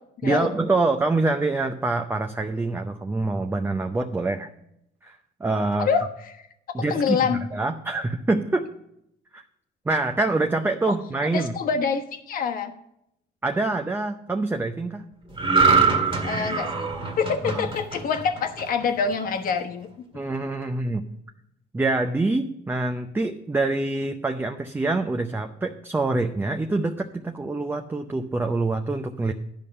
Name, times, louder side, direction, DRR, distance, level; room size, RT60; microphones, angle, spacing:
voice 1, 0.2-4.5 5.0-5.9 6.7-8.7 9.3-9.4 9.9-11.5 13.4-15.0 17.4-17.7 20.1-21.1 21.7-29.3, right 2 dB, 10° right, 4 dB, 0.6 m, -25 dB
voice 2, 6.9-7.4 11.3-12.7 16.2-16.9 17.2-19.9, left 6 dB, 55° left, 5 dB, 1.2 m, -25 dB
sound 1, 15.4-18.8 19.3-19.5, right 5 dB, 30° right, 1.7 m, -23 dB
10.5 x 5.4 x 6.6 m, 0.78 s
cardioid pair, 110°, 17 cm